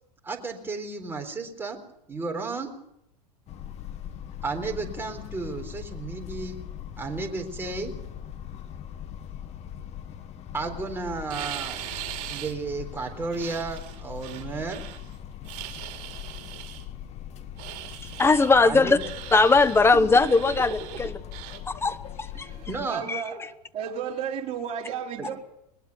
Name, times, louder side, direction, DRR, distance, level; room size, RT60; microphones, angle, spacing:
voice 1, 0.2-1.8 2.1-2.7 4.4-6.6 7.0-7.9 10.5-11.8 12.3-14.8 18.6-19.0 22.7-23.0 25.2-25.3, right 3 dB, 10° right, 3.9 m, -33 dB
sound 1, 3.5-22.9, left 10 dB, 30° left, 1.8 m, -40 dB
sound 2, 11.3-12.5 13.0-15.1 15.4-16.9 17.6-18.6 19.0-19.8 20.1-21.6, right 13 dB, 45° right, 3.5 m, -40 dB
voice 2, 18.2-19.0 19.3-21.1 21.7-22.5 23.1-23.2, left 3 dB, 10° left, 1.0 m, -20 dB
voice 3, 22.3-23.4 23.7-25.4, right 7 dB, 30° right, 4.5 m, -33 dB
21.0 x 20.5 x 6.9 m
figure-of-eight pair, 95°, 21 cm